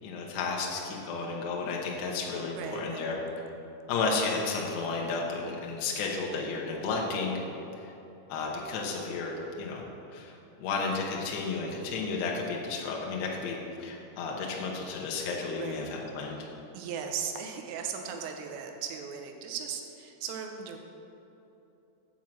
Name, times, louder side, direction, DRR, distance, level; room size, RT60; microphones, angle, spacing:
voice 1, 0.0-3.4 3.9-7.5 8.3-9.8 10.1-16.5, left 4 dB, 75° left, -1 dB, 2.8 m, -32 dB
voice 2, 2.5-3.2 15.5-15.9 16.7-20.8, right 7 dB, 85° right, 3 dB, 3.3 m, -37 dB
9.0 x 4.6 x 7.3 m, 3.0 s
omnidirectional pair, 5.7 m